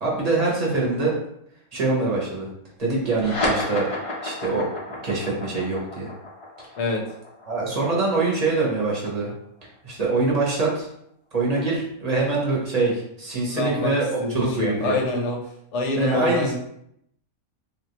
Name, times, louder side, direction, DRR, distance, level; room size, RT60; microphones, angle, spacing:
voice 1, 0.0-1.2 1.7-2.5 2.8-3.9 4.2-4.7 5.0-6.1 6.6-6.7 7.5-9.3 9.8-10.9 11.3-15.0 16.0-16.5, right 3 dB, 30° right, -4 dB, 0.8 m, -24 dB
sound 1, 3.1-9.9, left 2 dB, 45° left, 0.4 m, -32 dB
voice 2, 6.8-7.1 13.5-13.9 14.2-15.4 15.7-16.5, left 3 dB, 60° left, 0 dB, 1.0 m, -26 dB
3.5 x 2.4 x 2.9 m, 0.74 s
omnidirectional pair, 1.5 m